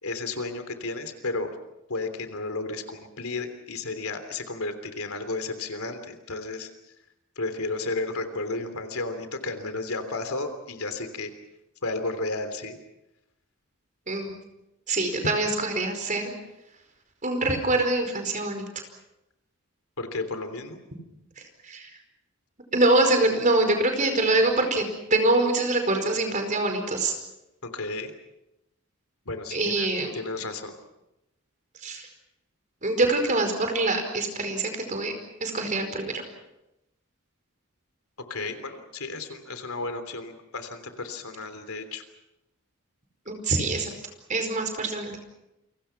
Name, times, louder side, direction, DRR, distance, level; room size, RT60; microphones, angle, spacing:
voice 1, 0.0-1.5 1.9-6.7 7.4-11.3 11.8-12.8 20.0-20.8 27.6-28.1 29.3-29.9 30.1-30.8 38.3-42.0, left 3 dB, 80° left, 8 dB, 3.3 m, -33 dB
voice 2, 14.9-16.3 17.2-18.6 21.6-21.9 22.7-24.8 25.1-27.1 29.5-30.1 31.8-32.1 32.8-35.1 35.4-36.2 43.3-43.9 44.3-45.2, right 2 dB, 35° right, 6 dB, 4.9 m, -24 dB
29.0 x 24.5 x 6.0 m, 0.91 s
head